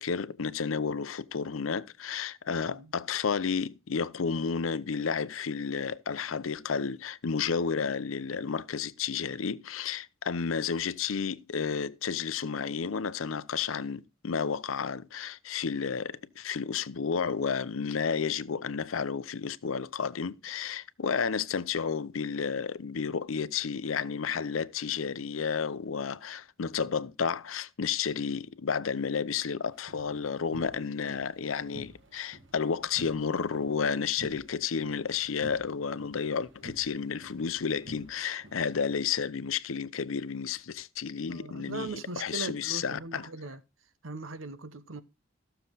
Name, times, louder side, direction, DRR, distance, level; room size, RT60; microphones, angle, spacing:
voice 1, 0.0-41.9 42.2-43.3, left 6 dB, 85° left, 0.6 m, -31 dB
sound 1, 29.7-39.1, right 1 dB, 65° right, 1.6 m, -52 dB
voice 2, 41.3-43.6 44.0-45.0, right 3 dB, 80° right, 1.0 m, -39 dB
14.5 x 6.9 x 3.9 m
head